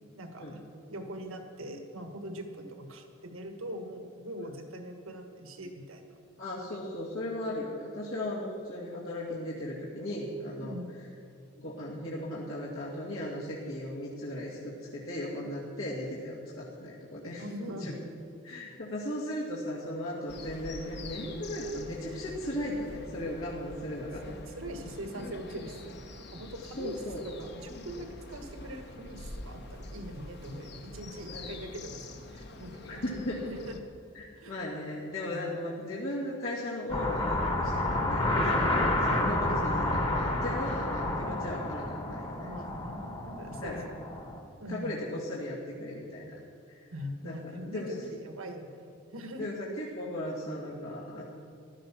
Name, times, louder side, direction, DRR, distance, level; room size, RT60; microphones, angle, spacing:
voice 1, 0.1-0.6 0.9-6.2 10.6-10.9 17.4-18.0 24.3-33.8 34.3-34.6 39.1-39.3 42.4-43.8 44.6-44.9 46.9-49.5, equal, 80° right, 5 dB, 1.6 m, -42 dB
voice 2, 6.4-10.8 11.5-17.9 18.4-24.2 26.8-27.2 31.3-31.5 32.8-33.4 34.1-42.5 43.6-43.8 44.7-46.3 46.7-46.8 47.2-48.0 49.4-51.2, left 1 dB, 80° left, -6 dB, 2.4 m, -37 dB
sound 1, 20.3-33.8, left 2 dB, 50° left, 1.1 m, -45 dB
sound 2, 36.9-44.4, left 1 dB, 25° left, 1.2 m, -30 dB
15.5 x 11.5 x 6.0 m, 2.4 s
head